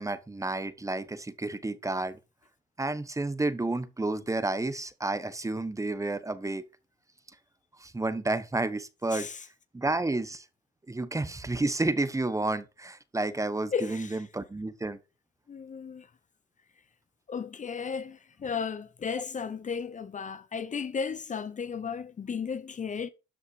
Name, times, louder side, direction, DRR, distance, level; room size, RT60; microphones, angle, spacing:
voice 1, 0.0-2.2 2.8-6.6 7.8-9.3 9.7-10.4 10.9-15.0, right 2 dB, 15° right, 1.3 m, -31 dB
voice 2, 9.1-9.4 13.7-14.2 15.5-16.1 17.3-23.1, left 6 dB, 40° left, 0.9 m, -34 dB
13.0 x 5.5 x 4.9 m
cardioid pair, 90°, 20 cm